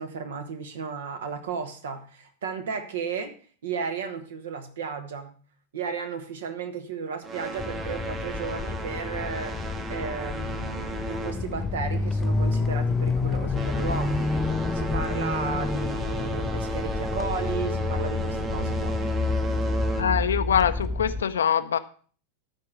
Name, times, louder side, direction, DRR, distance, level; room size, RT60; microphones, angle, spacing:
voice 1, 0.0-3.3 3.6-5.3 5.7-14.3 14.7-19.0, right 5 dB, 60° right, 8 dB, 1.4 m, -34 dB
sound 1, 7.2-12.1 12.4-12.7 13.3-20.4, right 2 dB, 25° right, 1.2 m, -34 dB
sound 2, 7.6-21.2, left 4 dB, 15° left, 0.5 m, -29 dB
voice 2, 20.0-21.8, left 8 dB, 65° left, 12 dB, 0.7 m, -24 dB
12.5 x 4.7 x 6.5 m, 0.43 s
figure-of-eight pair, 90°, 0 cm